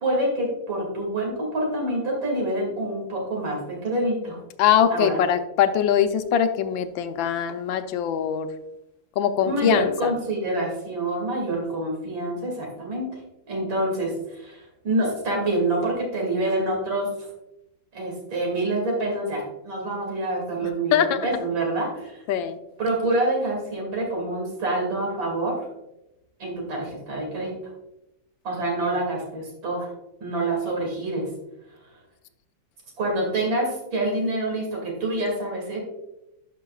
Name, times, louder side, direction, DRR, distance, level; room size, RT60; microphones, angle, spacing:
voice 1, 0.0-4.4 4.9-5.2 9.4-17.3 17.9-22.2 22.8-25.6 26.4-27.7 28.4-29.9 30.2-31.3 33.0-35.8, right 1 dB, 85° right, -1 dB, 3.1 m, -27 dB
voice 2, 4.6-8.5 9.2-10.1 20.9-21.3 22.3-22.6, left 9 dB, 85° left, 9 dB, 1.4 m, -22 dB
11.5 x 5.7 x 2.3 m, 0.91 s
omnidirectional pair, 2.1 m